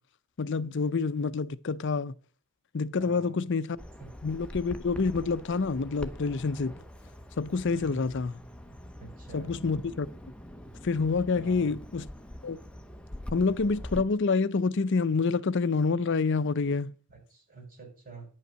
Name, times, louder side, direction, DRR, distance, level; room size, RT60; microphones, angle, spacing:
voice 1, 0.4-2.1 2.7-3.7 4.2-6.7 7.4-8.4 9.3-10.1 10.8-12.1 12.4-12.6 13.3-16.9, left 4 dB, 55° left, 0.5 m, -27 dB
voice 2, 3.0-3.4 4.0-4.1 7.7-8.0 9.0-9.5 11.3-11.7 17.1-18.3, right 2 dB, 40° right, 4.9 m, -47 dB
Bird vocalization bird call bird song, 3.8-14.0, equal, 5° left, 0.8 m, -44 dB
10.0 x 5.5 x 7.4 m
head